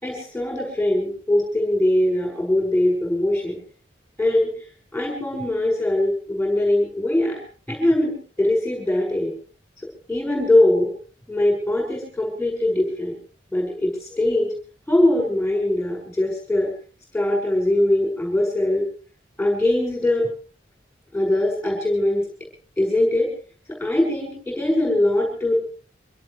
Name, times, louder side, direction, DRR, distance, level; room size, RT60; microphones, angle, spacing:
voice 1, 0.0-3.6 4.2-4.5 4.9-7.4 7.7-9.3 10.1-10.9 11.3-13.1 13.5-14.5 14.9-16.7 17.1-18.8 19.4-20.3 21.1-22.2 22.8-23.3 23.8-25.5, left 1 dB, 5° left, -2 dB, 6.0 m, -21 dB
25.0 x 17.0 x 3.3 m, 0.39 s
head